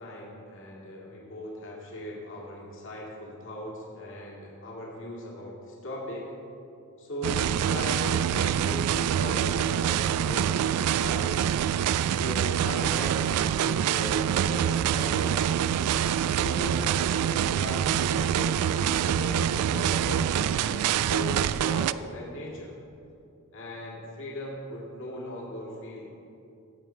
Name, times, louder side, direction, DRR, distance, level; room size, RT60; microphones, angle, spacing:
voice 1, 0.0-6.3 7.0-11.4 12.1-15.4 16.2-22.8 23.5-26.2, left 1 dB, 60° left, -3 dB, 2.3 m, -38 dB
sound 1, 7.2-21.9, right 9 dB, 85° right, 0.3 m, -25 dB
16.0 x 7.5 x 4.4 m, 2.6 s
head